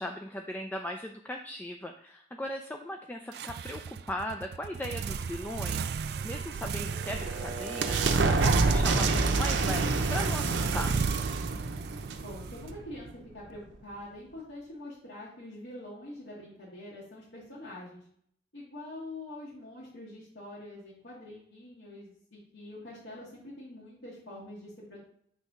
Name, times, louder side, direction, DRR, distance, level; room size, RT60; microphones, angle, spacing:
voice 1, 0.0-5.9 6.2-11.0, equal, 10° left, 3 dB, 0.4 m, -38 dB
sound 1, 3.3-13.1, right 6 dB, 60° right, 0.3 m, -36 dB
sound 2, 6.7-13.1, right 3 dB, 85° right, 0.7 m, -28 dB
voice 2, 12.2-18.0 18.5-25.0, left 1 dB, 90° left, -7 dB, 2.0 m, -45 dB
8.1 x 3.4 x 5.5 m, 0.66 s
head